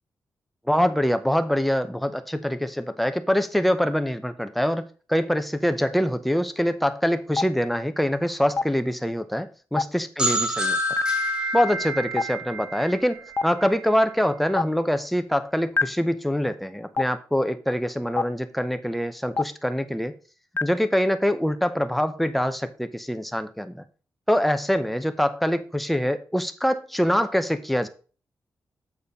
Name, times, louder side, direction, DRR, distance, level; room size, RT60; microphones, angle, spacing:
voice 1, 0.7-10.8 11.5-20.1 20.6-23.8 24.3-27.9, equal, ahead, 0.7 m, -24 dB
Stream, 7.4-7.5 8.6-8.7 9.8-9.9 11.0-11.1 12.2-12.3 13.4-13.5 14.6-14.7 15.8-15.9 17.0-17.1 18.2-18.3 19.4-19.5 20.6-20.7, left 4 dB, 35° left, 0.4 m, -21 dB
sound 1, 10.2-13.8, equal, 15° right, 1.8 m, -27 dB
7.1 x 4.3 x 5.2 m
cardioid pair, 95°, 7 cm